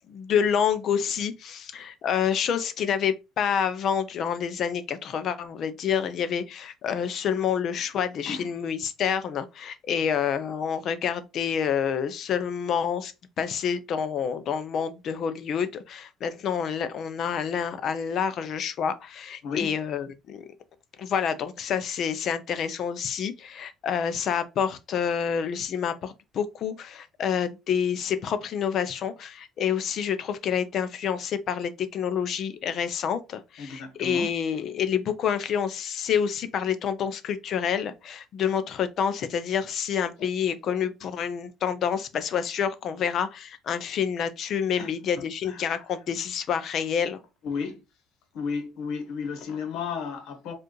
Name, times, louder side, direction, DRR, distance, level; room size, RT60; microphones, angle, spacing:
voice 1, 0.1-20.4 21.0-47.2, left 7 dB, 40° left, 0.5 m, -28 dB
voice 2, 19.4-19.7 33.6-34.3 44.8-44.9 45.2-45.8 47.4-47.8 48.3-50.5, left 5 dB, 55° left, 1.0 m, -33 dB
4.6 x 2.4 x 3.0 m
cardioid pair, 175°, 0 cm